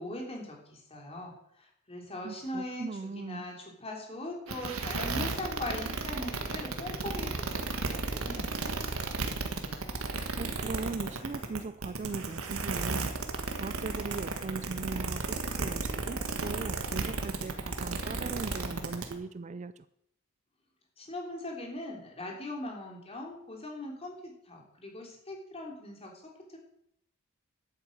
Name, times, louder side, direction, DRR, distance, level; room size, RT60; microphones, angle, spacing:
voice 1, 0.0-2.9 3.2-8.7 21.0-26.6, left 1 dB, 30° left, 0 dB, 3.5 m, -40 dB
voice 2, 2.2-3.5 10.4-13.1 13.5-19.9, right 4 dB, 35° right, 15 dB, 0.4 m, -39 dB
sound 1, 4.5-19.1, right 3 dB, 90° right, 1.7 m, -34 dB
11.0 x 9.1 x 8.0 m, 0.75 s
head